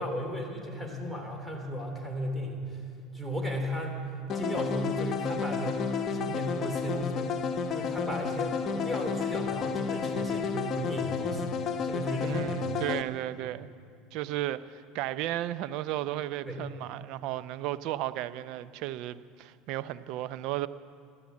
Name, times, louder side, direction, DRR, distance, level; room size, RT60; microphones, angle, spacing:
voice 1, 0.0-2.8 3.1-4.0 4.3-7.3 7.7-11.6 11.8-12.7 16.4-16.7, equal, 5° right, 3.2 m, -35 dB
sound 1, 4.3-13.0, left 6 dB, 45° left, 1.1 m, -31 dB
voice 2, 12.2-13.7 14.1-20.7, right 14 dB, 65° right, 0.6 m, -34 dB
13.0 x 12.5 x 8.4 m
supercardioid pair, 105°, 0 cm